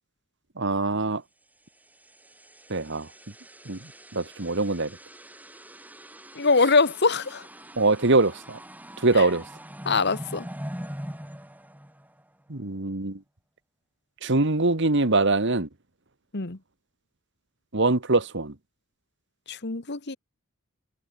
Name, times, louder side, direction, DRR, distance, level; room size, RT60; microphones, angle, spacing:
voice 1, 0.6-1.2 2.7-3.1 3.7-4.9 7.8-8.6 9.0-9.4 12.5-13.2 14.2-15.7 17.7-18.5, right 2 dB, 55° right, 1.7 m, -23 dB
sound 1, 1.8-12.5, equal, 10° right, 5.5 m, -43 dB
voice 2, 6.3-7.5 9.1-9.3 9.8-10.5 16.3-16.6 19.5-20.2, left 4 dB, 50° left, 1.4 m, -23 dB
head